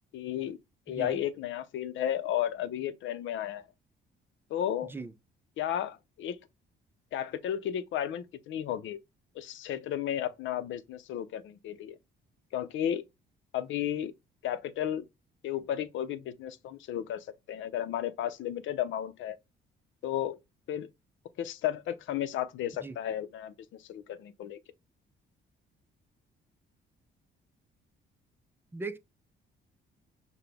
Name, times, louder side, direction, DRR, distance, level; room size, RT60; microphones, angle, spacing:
voice 1, 0.1-0.6 0.9-3.7 4.5-4.9 5.6-6.4 7.1-9.0 9.3-12.0 12.5-13.0 13.5-14.1 14.4-15.1 15.4-19.4 20.0-20.4 20.7-20.9 21.4-24.6, left 10 dB, 75° left, 0.6 m, -33 dB
voice 2, 0.9-1.2 4.9-5.1 22.8-23.0 28.7-29.0, right 3 dB, 10° right, 0.5 m, -39 dB
5.8 x 2.2 x 3.4 m
cardioid pair, 95°, 20 cm